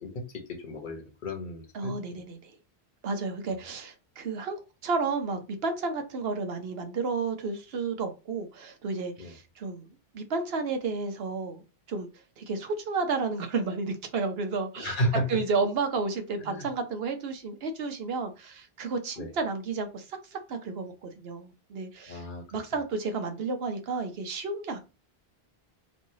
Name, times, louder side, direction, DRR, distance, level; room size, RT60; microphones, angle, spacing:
voice 1, 0.0-2.2 9.2-9.3 14.8-15.3 16.4-16.7 19.2-19.3 22.1-22.6, equal, 55° left, 1.0 m, -33 dB
voice 2, 1.7-2.5 3.0-4.6 4.8-9.9 10.1-11.6 11.9-12.1 12.4-14.9 15.3-22.2 22.5-24.8, right 4 dB, 70° right, 0.9 m, -32 dB
3.1 x 2.6 x 2.7 m
omnidirectional pair, 1.1 m